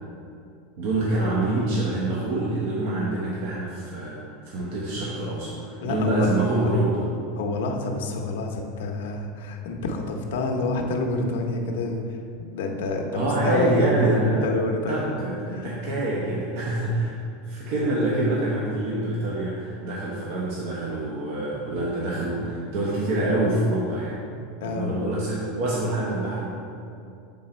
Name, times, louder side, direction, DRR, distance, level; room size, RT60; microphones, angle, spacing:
voice 1, 0.8-7.0 13.1-14.5 14.9-15.3 15.6-17.2 17.4-24.2 24.6-26.5, right 1 dB, 60° right, -5 dB, 1.1 m, -26 dB
voice 2, 5.8-6.7 7.3-12.2 12.5-15.1 15.5-15.8 24.6-24.9, left 2 dB, 80° left, 2 dB, 0.8 m, -28 dB
7.6 x 3.9 x 4.3 m, 2.4 s
supercardioid pair, 155°, 0 cm